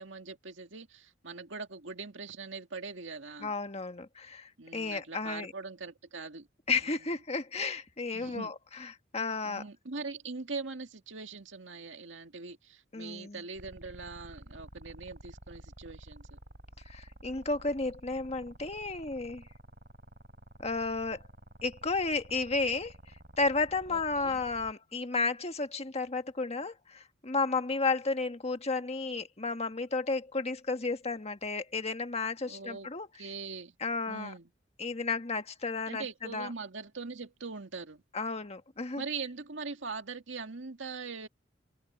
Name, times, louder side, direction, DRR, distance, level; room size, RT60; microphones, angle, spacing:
voice 1, 0.0-3.5 4.6-6.5 8.1-8.5 9.4-16.4 23.9-24.4 32.5-32.9 33.2-33.8 34.1-34.5 35.9-38.0 39.0-41.3, right 4 dB, 80° right, 2.1 m, -42 dB
voice 2, 3.4-5.5 6.7-9.6 12.9-13.4 16.8-19.5 20.6-21.3 21.6-22.9 23.4-33.3 33.8-34.3 34.8-36.5 38.1-39.0, left 3 dB, 35° left, 1.6 m, -33 dB
sound 1, 13.5-24.7, right 1 dB, 55° right, 3.7 m, -51 dB
head